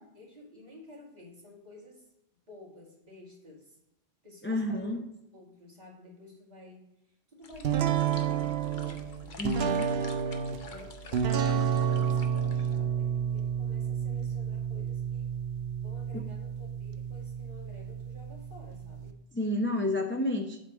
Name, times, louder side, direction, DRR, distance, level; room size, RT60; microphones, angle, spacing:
voice 1, 0.1-2.1 2.5-3.8 4.2-5.0 5.3-9.4 9.7-10.0 10.6-15.3 15.8-19.1, left 2 dB, 40° right, -4 dB, 2.2 m, -52 dB
voice 2, 4.4-5.0 9.4-9.9 16.1-16.2 19.3-20.6, left 1 dB, 15° left, 3 dB, 0.4 m, -30 dB
sound 1, 7.4-12.8, left 4 dB, 50° left, 0.9 m, -49 dB
sound 2, 7.6-19.1, right 8 dB, 70° right, 0.8 m, -30 dB
7.9 x 3.2 x 6.0 m, 0.89 s
omnidirectional pair, 1.1 m